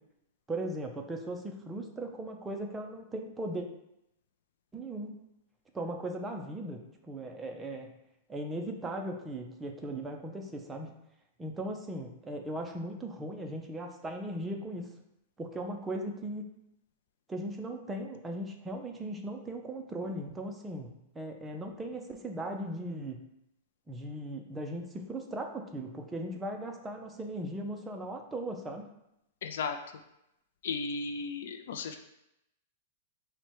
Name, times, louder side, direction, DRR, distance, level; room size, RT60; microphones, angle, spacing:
voice 1, 0.5-3.7 4.7-5.2 5.7-7.9 8.3-10.9 11.4-14.9 15.4-16.5 17.3-23.2 23.9-28.9, right 1 dB, 10° right, 2 dB, 0.5 m, -38 dB
voice 2, 29.4-29.8 30.6-32.0, left 4 dB, 70° left, 7 dB, 0.4 m, -35 dB
4.4 x 2.1 x 4.3 m, 0.83 s
supercardioid pair, 155°, 0 cm